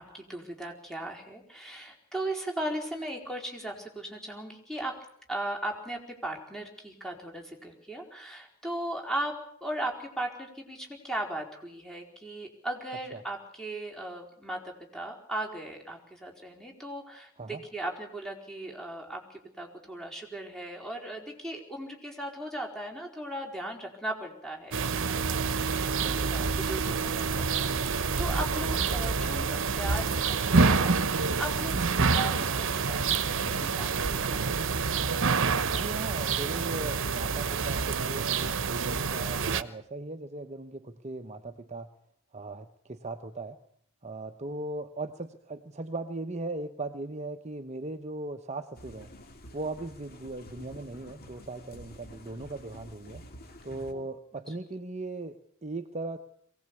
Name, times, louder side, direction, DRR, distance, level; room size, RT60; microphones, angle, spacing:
voice 1, 0.0-5.0 5.3-25.2 25.7-34.6 53.9-54.1, right 1 dB, ahead, 2 dB, 4.4 m, -37 dB
sound 1, 24.7-39.6, right 4 dB, 60° right, 1.1 m, -27 dB
voice 2, 35.8-41.9 42.3-43.6 44.0-49.1 49.5-53.2 53.6-56.2, right 2 dB, 30° right, 7 dB, 1.0 m, -38 dB
sound 2, 48.7-53.9, left 1 dB, 45° left, 2.9 m, -49 dB
23.0 x 18.0 x 8.3 m, 0.65 s
head